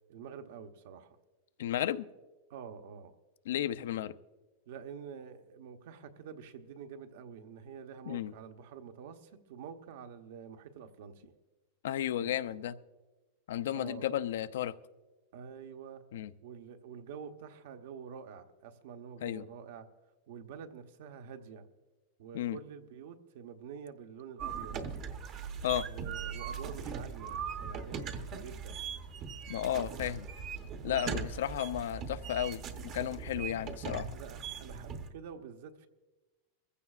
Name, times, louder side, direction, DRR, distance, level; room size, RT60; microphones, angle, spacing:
voice 1, 0.1-1.2 2.5-3.1 4.7-11.3 12.2-12.6 13.7-14.1 15.3-16.0 16.4-19.9 20.3-21.7 22.2-24.8 25.9-27.3 27.6-28.8 30.9-31.4 34.1-35.9, right 7 dB, 65° right, 6 dB, 1.0 m, -47 dB
voice 2, 1.6-2.1 3.5-4.1 8.1-8.3 11.8-12.8 13.5-14.7 16.1-16.3 19.2-19.4 22.3-22.6 25.6-25.8 29.5-30.3 30.8-34.2, left 11 dB, 80° left, 13 dB, 0.6 m, -33 dB
sound 1, 24.4-35.1, right 6 dB, 30° right, 0.9 m, -40 dB
23.0 x 15.0 x 2.5 m, 1.2 s
supercardioid pair, 175°, 0 cm